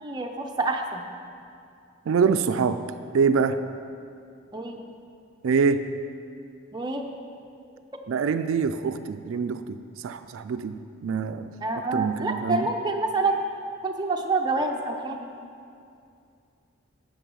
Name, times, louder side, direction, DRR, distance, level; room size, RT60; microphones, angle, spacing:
voice 1, 0.0-1.0 4.5-4.8 6.7-7.0 8.5-8.6 11.6-13.4 13.8-15.3, right 3 dB, 20° right, 2 dB, 0.6 m, -27 dB
voice 2, 2.1-2.8 3.1-3.6 5.4-5.9 8.1-11.5 11.9-12.7, right 5 dB, 80° right, 10 dB, 0.4 m, -25 dB
9.0 x 6.9 x 5.5 m, 2.5 s
head